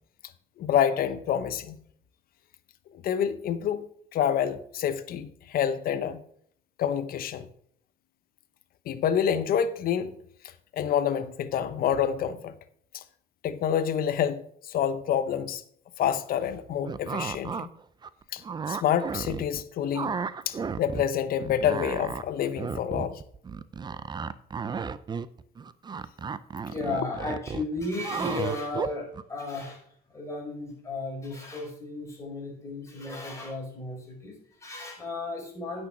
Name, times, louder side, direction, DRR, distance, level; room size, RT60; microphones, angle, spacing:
voice 1, 0.6-1.8 3.0-3.9 4.1-6.2 6.8-7.5 8.9-10.1 10.7-12.5 12.9-13.0 13.4-15.6 16.0-17.7 18.3-20.1 20.5-23.2, left 9 dB, 60° left, 0.8 m, -27 dB
sound 1, 16.8-17.7 18.0-19.6 19.9-21.0 21.3-29.2, right 6 dB, 25° right, 0.5 m, -33 dB
voice 2, 26.7-35.9, left 2 dB, 15° left, 4.8 m, -35 dB
9.2 x 6.3 x 6.0 m
cardioid pair, 110°, 17 cm